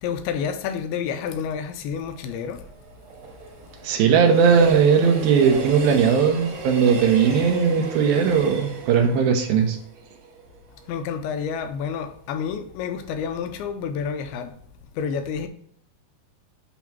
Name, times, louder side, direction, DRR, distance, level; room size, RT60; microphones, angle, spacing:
voice 1, 0.0-2.6 10.9-14.5 15.0-15.5, left 7 dB, 80° left, 2.4 m, -29 dB
Train, 2.0-11.1 11.5-11.6, right 3 dB, 55° right, 3.3 m, -35 dB
voice 2, 3.8-9.8, right 6 dB, 75° right, 2.6 m, -18 dB
8.3 x 3.1 x 6.0 m
omnidirectional pair, 4.8 m